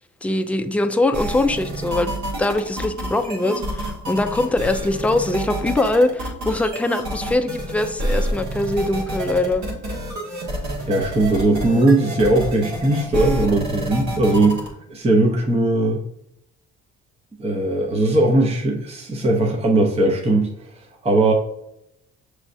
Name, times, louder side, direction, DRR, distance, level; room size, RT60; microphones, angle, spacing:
voice 1, 0.2-2.1 2.4-9.7, left 2 dB, 5° left, 7 dB, 0.3 m, -22 dB
sound 1, 1.1-14.7, right 1 dB, 70° right, 1.5 m, -28 dB
voice 2, 10.9-14.6 14.9-16.0 17.4-20.5 21.0-21.3, right 2 dB, 20° right, 0 dB, 0.7 m, -19 dB
6.0 x 3.2 x 2.6 m, 0.78 s
cardioid pair, 90°, 30 cm